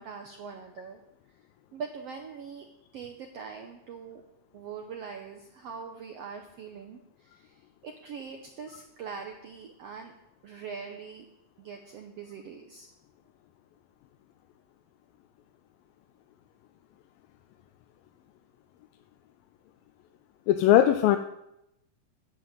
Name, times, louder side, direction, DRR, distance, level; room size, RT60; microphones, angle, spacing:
voice 1, 0.0-1.4 1.7-2.7 2.9-4.2 4.5-10.1 10.4-11.3 11.6-12.9, right 6 dB, 85° right, 4 dB, 1.4 m, -42 dB
voice 2, 20.5-21.2, left 12 dB, 80° left, 7 dB, 2.3 m, -19 dB
10.0 x 9.9 x 7.6 m, 0.86 s
omnidirectional pair, 4.1 m